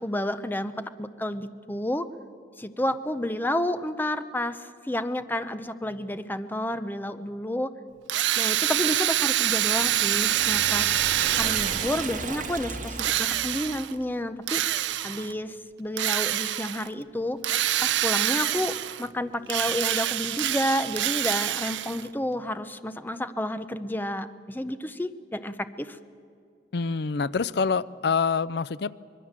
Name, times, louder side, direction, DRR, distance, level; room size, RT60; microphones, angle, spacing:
voice 1, 0.0-2.1 2.6-7.7 8.4-11.0 11.4-14.6 15.0-17.4 17.8-26.0, left 1 dB, 10° left, 11 dB, 0.7 m, -30 dB
Drill, 8.1-12.2 13.0-13.9 14.5-15.3 16.0-16.9 17.4-19.1 19.5-22.1, right 12 dB, 80° right, 0.6 m, -26 dB
Liquid, 9.3-13.9, right 4 dB, 45° right, 2.1 m, -35 dB
voice 2, 26.7-28.9, left 5 dB, 60° left, 18 dB, 0.5 m, -26 dB
25.0 x 21.0 x 7.4 m, 2.3 s
head